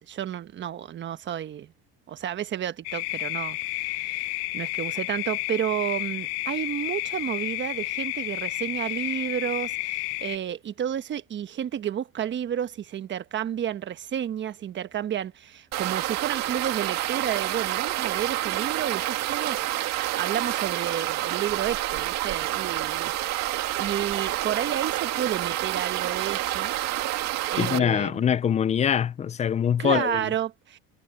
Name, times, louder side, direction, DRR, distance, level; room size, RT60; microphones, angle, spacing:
voice 1, 0.1-1.7 2.1-26.7 27.5-28.3 29.8-30.8, right 10 dB, 40° right, 1.2 m, -31 dB
sound 1, 2.9-10.4, left 23 dB, 85° left, 0.9 m, -31 dB
sound 2, 15.7-27.8, right 14 dB, 60° right, 2.2 m, -28 dB
voice 2, 27.6-30.2, left 8 dB, 20° left, 0.4 m, -24 dB
supercardioid pair, 115°, 31 cm